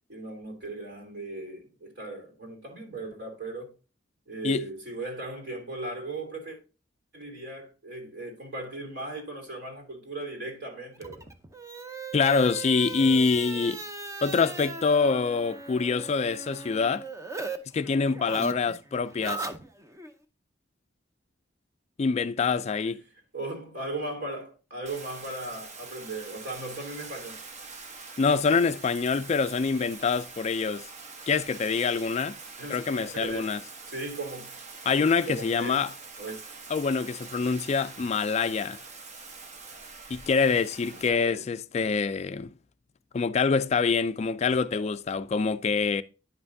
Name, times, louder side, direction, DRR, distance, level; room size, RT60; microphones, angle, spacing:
voice 1, 0.1-3.7 4.3-6.6 7.1-11.3 22.4-22.6 23.3-27.4 32.6-32.8 33.1-33.6 33.8-34.6 35.3-35.9 36.2-36.5 40.8-41.4, right 2 dB, 60° right, 3.0 m, -37 dB
sound 1, 11.0-17.6 17.8-20.1, right 3 dB, 15° right, 0.7 m, -38 dB
voice 2, 12.1-13.8 14.2-17.1 17.7-19.5 22.0-23.0 28.2-30.9 31.3-32.4 32.7-33.6 34.9-35.9 36.7-38.8 40.1-42.5 43.1-46.0, left 5 dB, 35° left, 0.3 m, -25 dB
Bathtub (filling or washing), 24.8-41.1, right 4 dB, 40° right, 1.0 m, -44 dB
10.0 x 5.6 x 2.6 m
head